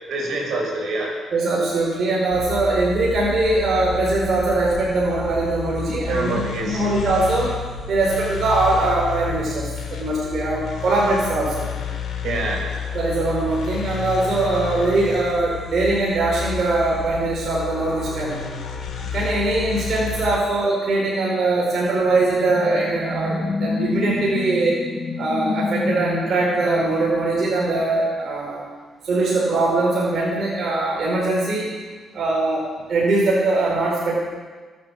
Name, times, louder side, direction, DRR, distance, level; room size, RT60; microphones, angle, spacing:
voice 1, 0.1-1.1 6.1-6.8 12.2-12.8, right 2 dB, 70° right, -1 dB, 6.0 m, -26 dB
voice 2, 1.3-7.5 7.9-11.7 12.9-18.4 19.0-24.8 25.2-28.7 29.0-31.7 32.1-34.2, right 2 dB, 55° right, -4 dB, 4.9 m, -21 dB
sound 1, 2.3-20.4, left 6 dB, 70° left, 3.6 m, -31 dB
sound 2, 21.7-28.1, left 3 dB, 40° left, 2.2 m, -29 dB
22.5 x 8.8 x 7.2 m, 1.4 s
cardioid pair, 90°, 0 cm